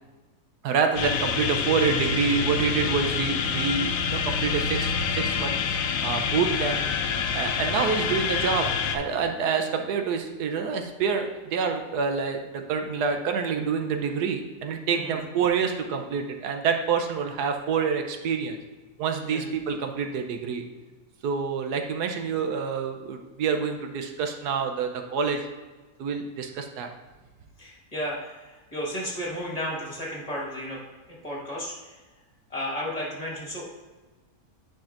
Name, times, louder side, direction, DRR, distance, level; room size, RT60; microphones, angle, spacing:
voice 1, 0.6-5.5 6.0-6.8 7.3-18.6 19.0-20.6 21.2-25.4 26.0-26.9, right 6 dB, 80° right, 5 dB, 1.2 m, -27 dB
sound 1, 0.9-9.0, left 6 dB, 70° left, 0.9 m, -27 dB
voice 2, 27.6-30.8 31.1-32.0 32.5-33.7, equal, 25° left, -4 dB, 1.6 m, -33 dB
10.5 x 5.2 x 2.5 m, 1.2 s
omnidirectional pair, 1.7 m